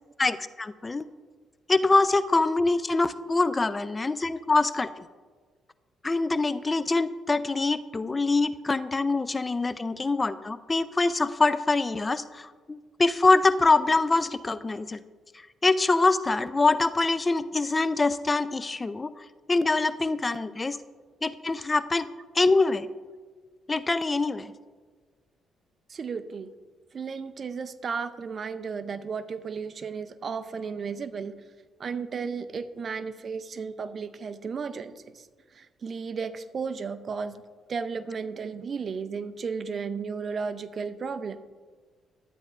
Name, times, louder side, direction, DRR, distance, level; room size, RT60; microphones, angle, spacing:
voice 1, 0.2-1.1 1.7-5.0 6.0-15.0 15.3-20.8 21.2-22.1 22.3-22.9 23.7-24.5, left 3 dB, 25° left, 14 dB, 0.3 m, -24 dB
voice 2, 25.9-26.5 26.9-31.3 31.8-35.3 35.5-37.4 37.7-41.4, right 5 dB, 45° right, 11 dB, 0.5 m, -34 dB
12.5 x 8.9 x 2.4 m, 1.5 s
cardioid pair, 90°, 0 cm